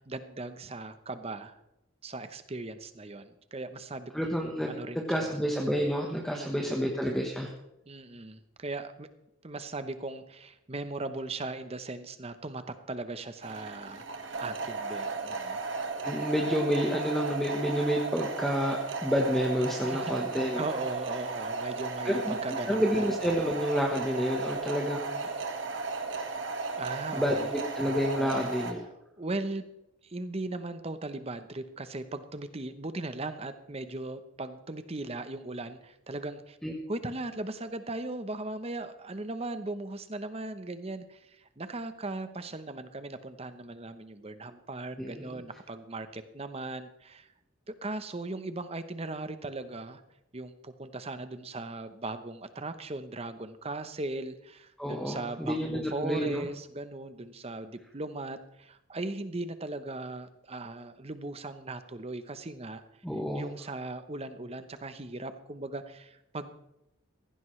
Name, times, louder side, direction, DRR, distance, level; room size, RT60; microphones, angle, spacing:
voice 1, 0.0-1.6 2.0-4.3 4.7-5.4 6.3-6.7 7.9-9.1 9.4-14.1 14.4-15.6 19.8-20.3 20.6-23.0 26.8-27.5 28.2-28.5 29.2-29.6 30.0-36.6 36.9-47.3 47.7-50.0 50.3-62.8 63.3-66.5, right 2 dB, 30° right, 11 dB, 0.8 m, -38 dB
voice 2, 4.1-7.5 15.7-20.6 22.0-22.4 22.6-25.3 27.1-28.8 36.6-36.7 45.0-45.3 54.8-56.5 63.0-63.4, equal, ahead, 0 dB, 1.1 m, -29 dB
sound 1, 13.4-28.7, right 3 dB, 65° right, 1.6 m, -35 dB
16.0 x 15.5 x 3.2 m, 0.87 s
head